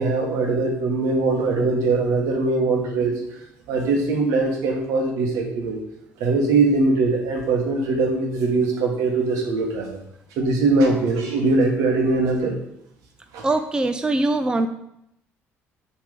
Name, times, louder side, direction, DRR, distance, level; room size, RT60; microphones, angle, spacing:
voice 1, 0.0-3.2 3.7-5.8 6.2-10.0 10.4-12.5 13.3-13.5, right 3 dB, 80° right, 2 dB, 1.4 m, -21 dB
voice 2, 13.4-14.7, right 2 dB, 15° right, 8 dB, 0.4 m, -22 dB
6.4 x 3.5 x 5.2 m, 0.79 s
cardioid pair, 95°, 5 cm